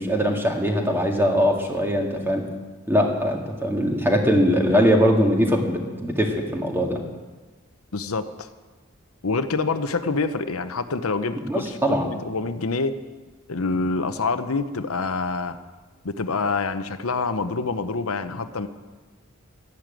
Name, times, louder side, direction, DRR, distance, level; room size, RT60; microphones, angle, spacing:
voice 1, 0.0-2.5 2.9-7.0 11.5-12.1, equal, 10° right, 2 dB, 2.0 m, -21 dB
voice 2, 7.9-8.5 9.2-13.0 13.5-15.6 16.0-18.7, left 3 dB, 85° left, 10 dB, 0.9 m, -26 dB
12.0 x 11.0 x 9.1 m, 1.3 s
head